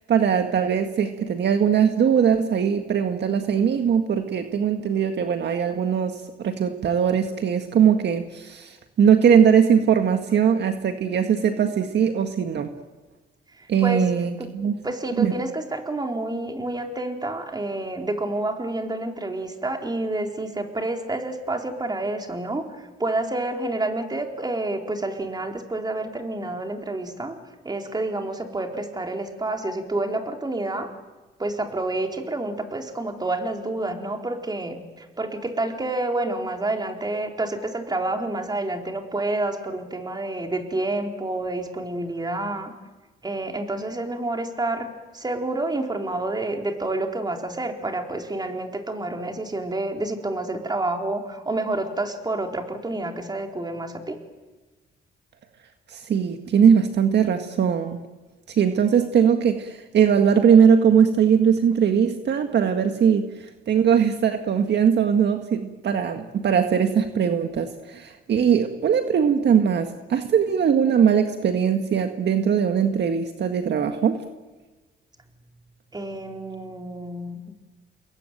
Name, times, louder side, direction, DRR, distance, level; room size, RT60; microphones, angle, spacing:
voice 1, 0.1-12.7 13.7-14.8 15.1-15.3 55.9-58.0 58.5-63.3 63.7-74.2, right 7 dB, 60° right, 6 dB, 1.8 m, -20 dB
voice 2, 13.6-14.0 14.4-14.5 14.8-27.4 27.6-30.9 31.4-42.7 43.2-44.9 45.1-54.2 75.9-77.5, right 2 dB, 20° right, 3 dB, 4.2 m, -29 dB
29.0 x 22.0 x 9.2 m, 1.2 s
cardioid pair, 90°, 20 cm